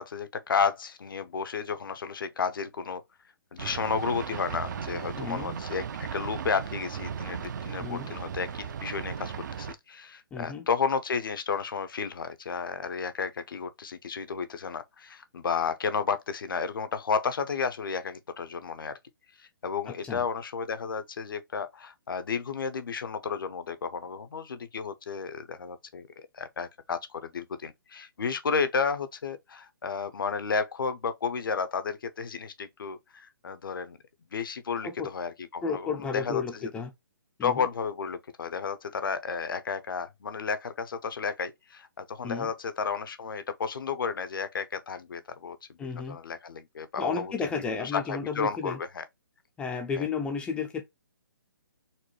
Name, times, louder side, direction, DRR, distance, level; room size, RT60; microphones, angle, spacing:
voice 1, 0.0-3.0 3.5-18.9 19.4-26.1 26.3-34.0 34.3-36.7 37.4-49.1 50.0-50.1, left 5 dB, 70° left, 0.7 m, -32 dB
sound 1, 3.6-9.7, right 7 dB, 55° right, 0.5 m, -36 dB
voice 2, 5.2-5.6 7.8-8.1 10.3-10.7 19.9-20.2 34.8-35.1 35.6-36.9 37.4-37.6 42.2-42.5 45.8-46.2 47.0-48.8 49.6-50.8, left 5 dB, 10° left, 0.4 m, -33 dB
4.1 x 2.2 x 3.0 m
hypercardioid pair, 145°, 12 cm